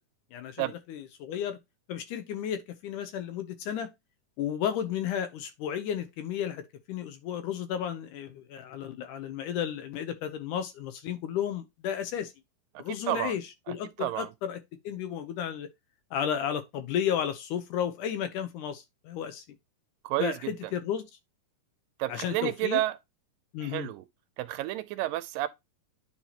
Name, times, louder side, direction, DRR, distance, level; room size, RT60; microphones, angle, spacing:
voice 1, 0.3-1.6 1.9-3.9 4.4-12.3 12.8-15.7 16.1-19.4 20.2-21.1 22.1-22.8 23.5-23.9, left 9 dB, 75° left, 2.1 m, -33 dB
voice 2, 12.9-13.3 13.7-14.3 20.0-20.5 22.0-22.9 23.6-24.1 24.4-25.5, right 15 dB, 80° right, 2.2 m, -31 dB
9.9 x 4.5 x 2.9 m
omnidirectional pair, 4.0 m